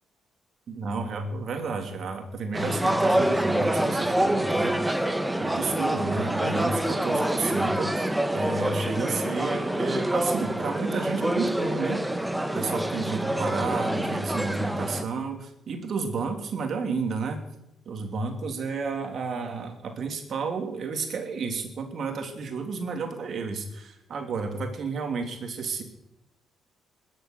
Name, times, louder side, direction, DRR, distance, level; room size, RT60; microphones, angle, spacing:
voice 1, 0.7-5.0 5.4-8.0 8.3-12.2 12.5-17.4 17.8-25.8, right 4 dB, 60° right, 4 dB, 3.1 m, -31 dB
sound 1, 2.5-15.0, right 1 dB, 10° right, 1.3 m, -26 dB
21.5 x 7.9 x 6.8 m, 0.83 s
hypercardioid pair, 55°, 0 cm